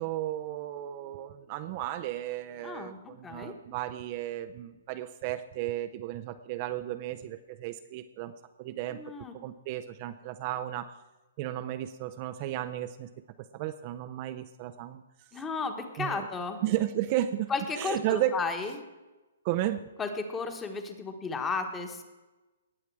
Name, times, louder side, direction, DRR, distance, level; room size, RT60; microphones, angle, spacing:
voice 1, 0.0-8.3 8.6-10.9 11.4-13.1 13.5-15.0 16.0-16.3 16.6-18.4 19.4-19.9, right 13 dB, 35° right, 9 dB, 0.5 m, -34 dB
voice 2, 2.6-3.5 8.9-9.3 15.3-16.6 17.5-18.7 20.0-22.0, left 4 dB, 15° left, 6 dB, 1.3 m, -34 dB
18.5 x 7.2 x 4.7 m, 1.1 s
hypercardioid pair, 150°, 0 cm